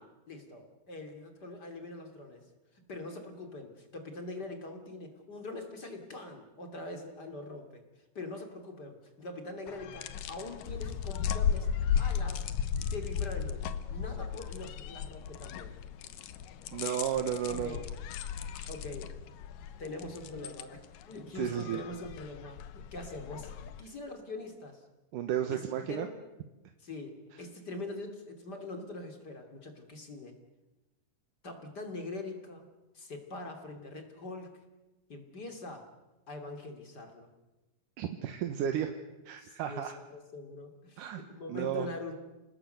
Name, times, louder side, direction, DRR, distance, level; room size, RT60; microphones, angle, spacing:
voice 1, 0.0-2.5 2.7-7.8 8.1-12.5 12.8-15.7 17.5-17.9 18.7-19.2 19.8-24.8 25.5-26.2 26.8-30.4 31.4-32.6 32.9-34.5 35.1-35.9 36.3-37.3 39.4-42.2, left 2 dB, 30° left, 5 dB, 3.1 m, -43 dB
sound 1, 9.7-23.8, left 8 dB, 85° left, 2.7 m, -36 dB
voice 2, 16.7-17.8 18.6-18.7 21.4-21.8 25.1-26.1 38.0-38.9 39.3-40.0 41.0-41.2 41.5-41.9, right 10 dB, 80° right, 6 dB, 2.7 m, -33 dB
28.5 x 19.0 x 7.9 m, 1.1 s
omnidirectional pair, 3.8 m